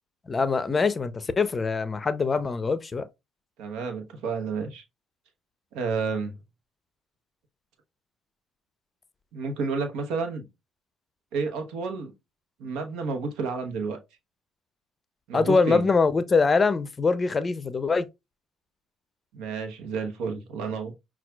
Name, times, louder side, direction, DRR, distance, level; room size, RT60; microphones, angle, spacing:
voice 1, 0.3-3.1 15.3-18.1, left 4 dB, 30° left, 0.5 m, -23 dB
voice 2, 3.6-4.8 5.7-6.4 9.3-10.5 11.3-12.1 12.6-14.0 15.3-15.9 19.3-20.9, right 4 dB, 80° right, 0.9 m, -30 dB
5.7 x 2.3 x 2.3 m
supercardioid pair, 70°, 0 cm